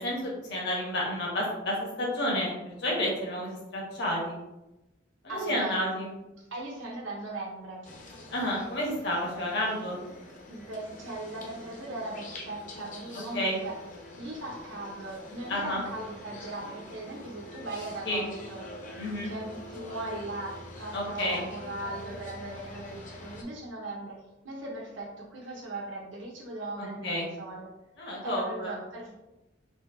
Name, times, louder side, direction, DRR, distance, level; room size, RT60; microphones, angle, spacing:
voice 1, 0.0-2.5 2.8-4.4 5.2-6.1 8.3-10.0 13.3-13.6 15.5-15.8 18.0-18.3 19.0-19.3 20.9-21.4 26.8-27.3 28.0-28.7, left 1 dB, 60° left, -3 dB, 1.4 m, -30 dB
voice 2, 5.3-5.9 6.5-7.9 10.5-13.7 14.2-18.9 19.2-27.7 28.2-29.1, right 2 dB, 85° right, -3 dB, 0.9 m, -39 dB
sound 1, 7.8-23.4, left 1 dB, 40° left, 0.8 m, -45 dB
4.3 x 2.7 x 3.9 m, 0.98 s
head